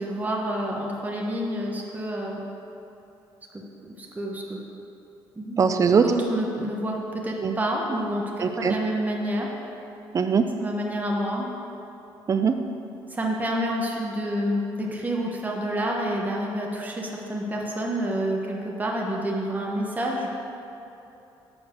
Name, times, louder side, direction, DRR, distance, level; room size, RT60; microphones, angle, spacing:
voice 1, 0.0-2.4 3.5-3.6 4.0-4.6 5.4-5.6 6.0-9.5 10.6-11.5 13.1-20.3, right 1 dB, 20° right, -2 dB, 1.2 m, -28 dB
voice 2, 5.6-6.0 7.4-7.5 8.4-8.7 10.1-10.4 12.3-12.5, right 6 dB, 35° right, 7 dB, 0.5 m, -20 dB
7.2 x 4.5 x 6.6 m, 2.9 s
cardioid pair, 100°, 9 cm